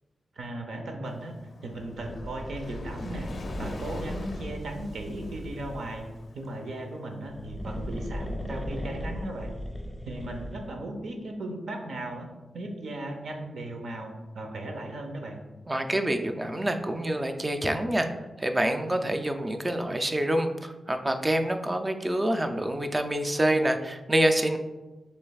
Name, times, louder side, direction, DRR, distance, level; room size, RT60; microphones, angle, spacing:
voice 1, 0.3-1.3 1.6-3.3 3.6-6.0 6.3-9.5 10.0-12.3 12.5-15.4, right 1 dB, 75° right, 3 dB, 0.8 m, -36 dB
Waves surf, 1.1-8.2, left 3 dB, 55° left, 0.4 m, -46 dB
sound 1, 1.8-6.2 7.1-10.8, equal, 10° left, 0.7 m, -38 dB
voice 2, 15.7-18.1 18.4-24.6, right 1 dB, 20° right, 6 dB, 0.4 m, -26 dB
6.5 x 3.2 x 2.4 m, 1.2 s
cardioid pair, 90°, 0 cm